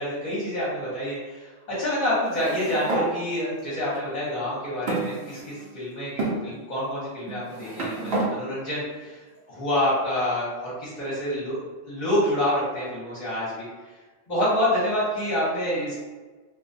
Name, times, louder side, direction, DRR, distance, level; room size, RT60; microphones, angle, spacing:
voice 1, 0.0-9.2 9.5-11.6 11.9-13.7 14.3-15.9, left 1 dB, 40° left, -8 dB, 0.7 m, -27 dB
sound 1, 2.3-3.1 3.9-4.0 4.9-5.7 6.2-6.4 7.3-8.3, right 2 dB, 65° right, 0.7 m, -29 dB
2.3 x 2.1 x 2.5 m, 1.3 s
omnidirectional pair, 1.3 m